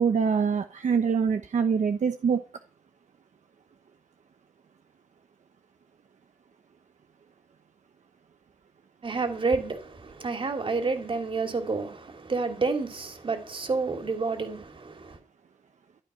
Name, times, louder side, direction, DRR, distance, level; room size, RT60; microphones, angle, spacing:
voice 1, 0.0-2.4, right 6 dB, 70° right, 1.0 m, -24 dB
voice 2, 9.0-15.2, right 4 dB, 45° right, 2.9 m, -29 dB
13.5 x 11.5 x 5.7 m
wide cardioid pair, 155°, 13 cm